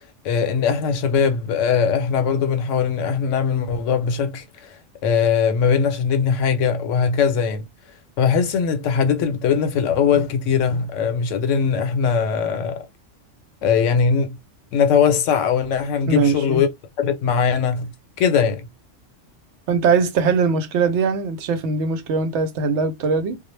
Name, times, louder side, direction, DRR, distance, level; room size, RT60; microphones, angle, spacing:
voice 1, 0.2-7.6 8.2-12.9 13.6-14.4 14.7-16.7 17.0-17.9 18.2-18.7, left 6 dB, 85° left, 1.0 m, -20 dB
voice 2, 16.1-16.6 19.7-23.4, right 5 dB, 75° right, 0.8 m, -21 dB
2.1 x 2.0 x 3.1 m
omnidirectional pair, 1.3 m